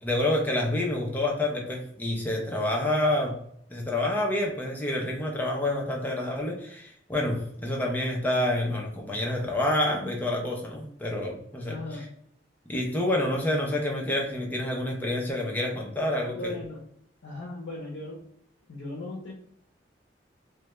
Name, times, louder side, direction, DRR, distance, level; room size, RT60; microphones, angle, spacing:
voice 1, 0.0-3.4 3.7-11.8 12.7-16.5, left 1 dB, 10° left, -1 dB, 0.4 m, -28 dB
voice 2, 11.7-12.1 16.3-16.8 17.2-18.2 18.7-19.3, left 2 dB, 75° left, -2 dB, 0.5 m, -37 dB
2.1 x 2.1 x 2.9 m, 0.69 s
head